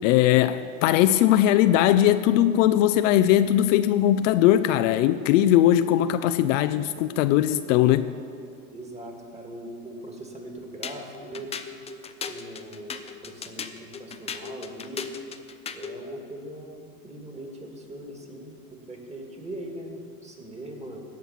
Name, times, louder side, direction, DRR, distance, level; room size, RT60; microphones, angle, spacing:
voice 1, 0.0-8.1, left 12 dB, 60° left, 11 dB, 0.5 m, -20 dB
voice 2, 8.7-11.5 12.3-15.1 15.7-21.0, right 1 dB, 15° right, 2 dB, 1.9 m, -40 dB
sound 1, 10.8-16.0, left 6 dB, 15° left, 0.5 m, -37 dB
17.0 x 6.0 x 5.6 m, 2.4 s
hypercardioid pair, 100°, 43 cm